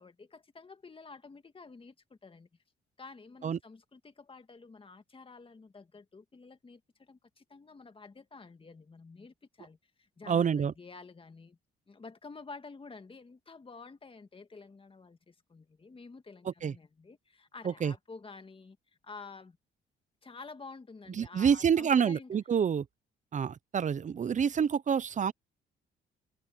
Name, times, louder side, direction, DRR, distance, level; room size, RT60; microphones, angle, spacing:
voice 1, 0.0-2.5 3.0-11.6 11.9-18.8 19.0-19.6 20.2-22.3, left 4 dB, 25° left, 2.0 m, -50 dB
voice 2, 10.3-10.7 16.6-16.7 17.6-17.9 21.2-22.8 23.3-25.3, right 7 dB, 40° right, 0.7 m, -27 dB
cardioid pair, 90°, 20 cm